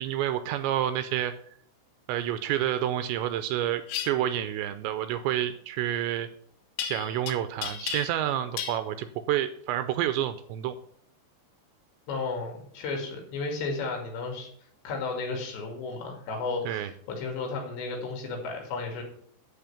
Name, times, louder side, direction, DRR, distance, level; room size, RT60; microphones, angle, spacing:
voice 1, 0.0-1.3 2.1-6.3 6.8-10.8 16.7-16.9, right 11 dB, 80° right, 10 dB, 2.7 m, -29 dB
sound 1, 3.9-4.1 6.8-7.3 7.6-8.3 8.6-8.8, left 9 dB, 85° left, 2.0 m, -33 dB
voice 2, 12.1-14.5 14.8-19.0, left 3 dB, 70° left, 2 dB, 4.3 m, -33 dB
11.0 x 4.4 x 7.1 m, 0.62 s
omnidirectional pair, 5.4 m